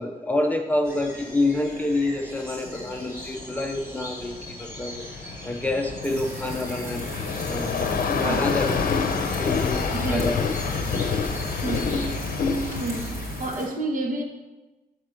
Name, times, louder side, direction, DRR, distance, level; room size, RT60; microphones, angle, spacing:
voice 1, 0.0-7.1 7.5-10.5 10.8-11.1, left 2 dB, 10° left, 2 dB, 0.5 m, -28 dB
sound 1, 0.8-13.1, left 1 dB, 15° right, 1.7 m, -42 dB
sound 2, 2.7-13.5, left 5 dB, 65° left, 0.7 m, -28 dB
sound 3, 6.0-13.7, right 1 dB, 85° right, 2.7 m, -38 dB
voice 2, 8.2-8.6 9.9-10.3 11.6-12.0 12.8-14.2, right 2 dB, 60° right, 1 dB, 1.3 m, -29 dB
7.3 x 4.3 x 6.5 m, 1.1 s
wide cardioid pair, 170°, 16 cm